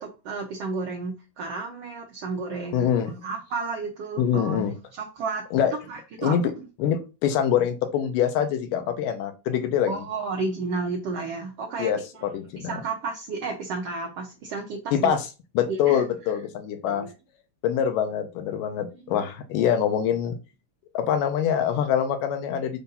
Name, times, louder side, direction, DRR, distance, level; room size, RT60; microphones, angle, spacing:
voice 1, 0.0-5.4 5.9-6.4 9.9-11.9 12.2-15.1 15.7-16.0 16.9-17.1 18.9-19.1, right 4 dB, 80° right, 0 dB, 1.4 m, -32 dB
voice 2, 2.7-3.1 4.2-4.7 5.5-5.7 6.2-6.5 6.8-10.0 11.8-12.8 14.9-15.3 15.6-17.1 17.6-20.4 20.9-22.8, left 9 dB, 75° left, 8 dB, 2.3 m, -24 dB
6.9 x 2.7 x 5.4 m, 0.30 s
omnidirectional pair, 4.0 m